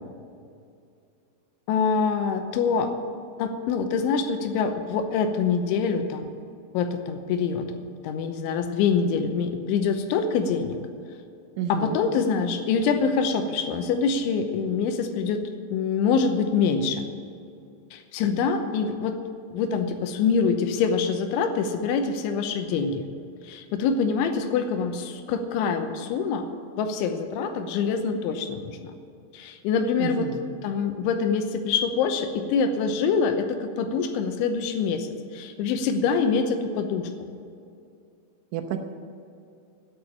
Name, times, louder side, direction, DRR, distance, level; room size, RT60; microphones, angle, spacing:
voice 1, 1.7-2.9 3.4-6.3 6.7-7.7 8.0-10.8 11.7-15.4 15.7-17.0 17.9-19.2 19.5-23.0 23.4-26.5 26.8-28.9 29.3-30.3 30.6-37.1, left 5 dB, 85° left, 7 dB, 3.2 m, -25 dB
voice 2, 11.6-12.0 30.0-30.4 38.5-38.8, right 9 dB, 80° right, 6 dB, 3.2 m, -30 dB
10.5 x 9.1 x 9.9 m, 2.5 s
omnidirectional pair, 5.4 m